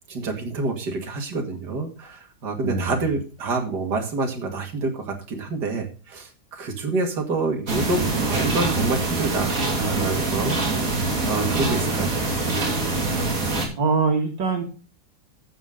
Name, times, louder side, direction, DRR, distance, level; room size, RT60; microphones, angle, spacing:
voice 1, 0.1-12.2, right 3 dB, 65° right, 2 dB, 2.7 m, -28 dB
voice 2, 2.6-3.0 11.9-12.2 13.8-14.6, right 4 dB, 85° right, 2 dB, 2.7 m, -23 dB
sound 1, 7.7-13.7, right 3 dB, 45° right, 3.0 m, -24 dB
12.0 x 8.1 x 3.8 m, 0.35 s
omnidirectional pair, 2.0 m